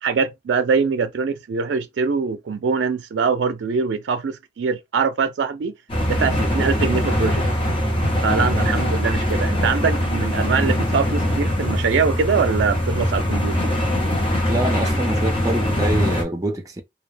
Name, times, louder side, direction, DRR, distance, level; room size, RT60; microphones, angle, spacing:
voice 1, 0.0-5.7 6.1-7.4 8.2-13.7, right 5 dB, 85° right, 0.4 m, -23 dB
sound 1, 5.9-16.2, equal, 30° left, 0.9 m, -22 dB
voice 2, 14.5-16.8, right 1 dB, 20° right, 0.5 m, -25 dB
2.3 x 2.1 x 3.3 m
head